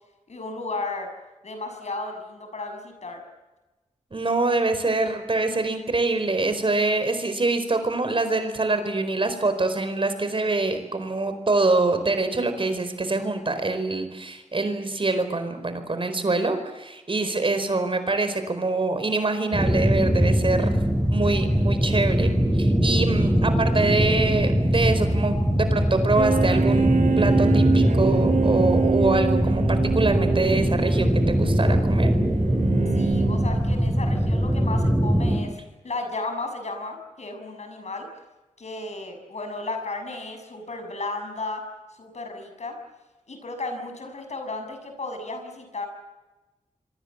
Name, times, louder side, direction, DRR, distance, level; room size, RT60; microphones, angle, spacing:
voice 1, 0.3-1.1 1.4-3.2 32.9-35.6 35.8-38.1 38.6-41.7 41.9-42.8 43.3-45.9, left 3 dB, 65° left, 6 dB, 6.6 m, -34 dB
voice 2, 4.1-20.8 21.1-32.1, right 2 dB, 45° right, 9 dB, 4.5 m, -25 dB
sound 1, 19.5-35.4, equal, 5° right, 5.1 m, -22 dB
sound 2, 26.2-33.8, right 5 dB, 90° right, 1.5 m, -26 dB
26.5 x 23.5 x 7.5 m, 1.1 s
wide cardioid pair, 80°, 12 cm